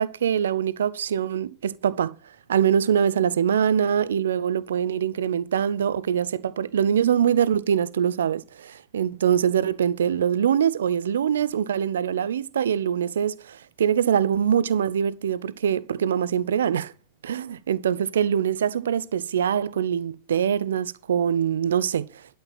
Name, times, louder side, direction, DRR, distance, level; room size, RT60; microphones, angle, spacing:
voice 1, 0.0-2.1 2.5-16.9 17.2-22.1, right 8 dB, 65° right, 0.5 m, -23 dB
11.5 x 4.4 x 7.5 m
figure-of-eight pair, 90°, 0 cm